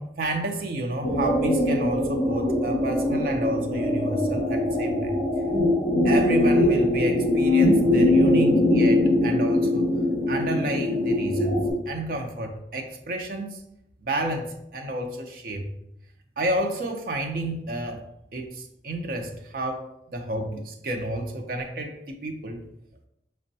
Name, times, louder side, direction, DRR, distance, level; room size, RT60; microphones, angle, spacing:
voice 1, 0.0-5.2 6.0-9.8 10.3-13.6 14.0-15.7 16.4-18.0 18.3-22.6, right 1 dB, 55° right, 3 dB, 0.5 m, -30 dB
sound 1, 1.0-11.7, left 1 dB, 35° left, 1.1 m, -22 dB
5.1 x 2.1 x 2.6 m, 0.81 s
head